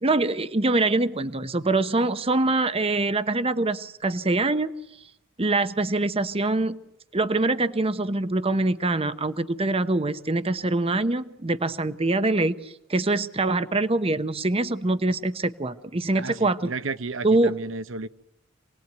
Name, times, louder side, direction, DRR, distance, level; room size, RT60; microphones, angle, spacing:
voice 1, 0.0-4.7 5.4-6.8 7.1-16.7 17.2-17.5, right 2 dB, 30° right, 0.9 m, -24 dB
voice 2, 16.1-18.1, right 3 dB, 70° right, 1.0 m, -33 dB
28.0 x 19.0 x 9.2 m
head